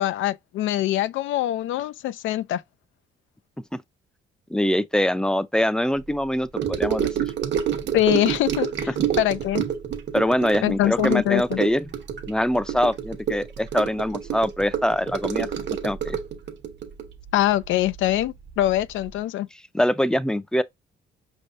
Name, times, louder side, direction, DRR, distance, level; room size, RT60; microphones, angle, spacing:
voice 1, 0.0-2.6 7.9-9.6 10.6-11.6 17.3-19.5, left 13 dB, 80° left, 0.4 m, -23 dB
voice 2, 4.5-7.1 10.1-11.8 12.3-15.5 15.8-16.2 19.7-20.6, left 1 dB, 5° left, 0.5 m, -23 dB
Gurgling / Sink (filling or washing) / Trickle dribble, 6.6-18.2 18.5-18.8 19.1-19.2, right 9 dB, 65° right, 1.1 m, -28 dB
5.2 x 3.5 x 2.5 m
cardioid pair, 90°, 20 cm